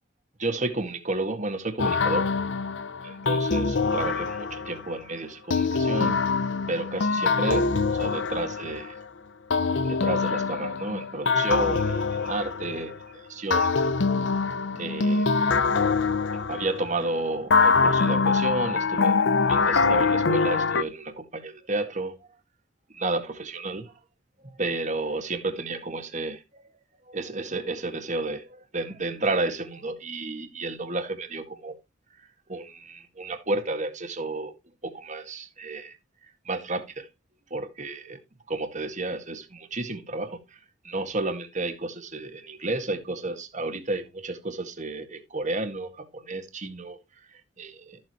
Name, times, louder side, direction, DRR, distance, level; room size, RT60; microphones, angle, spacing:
voice 1, 0.4-2.3 3.0-6.4 6.7-9.0 9.8-13.9 14.8-15.3 15.7-16.0 16.3-22.2 22.9-23.9 24.4-26.7 27.1-31.8 32.5-34.5 34.8-37.1 37.5-38.2 38.5-40.6 40.8-47.0 47.3-48.0, right 2 dB, 40° right, 1.9 m, -32 dB
sound 1, 1.8-4.9 5.5-9.0 9.5-13.0 13.5-17.0 17.5-20.8, left 4 dB, 75° left, 0.7 m, -24 dB
13.5 x 7.6 x 3.1 m
head